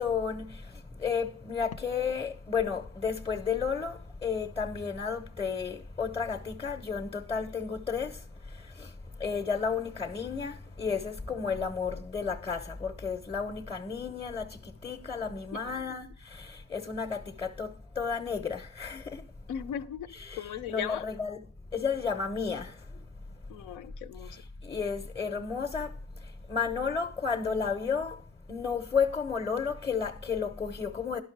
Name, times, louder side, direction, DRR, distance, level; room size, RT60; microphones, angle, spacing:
voice 1, 0.0-8.9 9.2-19.2 20.1-21.5 21.7-22.9 24.3-26.0 26.2-28.2 28.5-31.2, left 6 dB, 20° left, 0.8 m, -32 dB
voice 2, 19.5-20.1 20.4-21.0 23.5-24.4, left 9 dB, 80° left, 0.7 m, -37 dB
11.5 x 5.7 x 4.6 m
cardioid pair, 90°, 30 cm